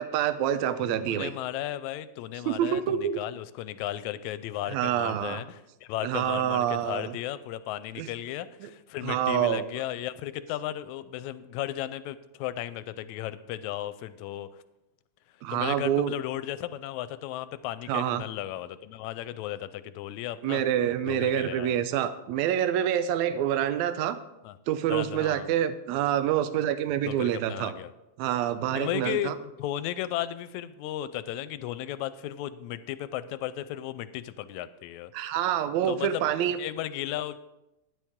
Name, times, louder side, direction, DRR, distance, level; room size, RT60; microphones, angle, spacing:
voice 1, 0.0-1.3 2.5-3.2 4.7-5.4 6.0-7.2 8.0-8.1 8.6-8.7 9.0-9.6 15.4-16.1 17.9-18.2 20.4-24.2 24.7-27.7 28.2-29.4 35.1-36.6, right 10 dB, 75° right, 12 dB, 1.9 m, -27 dB
voice 2, 1.0-14.5 15.5-20.6 21.0-21.8 24.4-24.6 24.9-25.5 27.0-27.9 28.8-35.1 35.9-37.4, left 13 dB, 80° left, 14 dB, 1.8 m, -35 dB
12.5 x 9.9 x 3.6 m, 0.92 s
omnidirectional pair, 3.5 m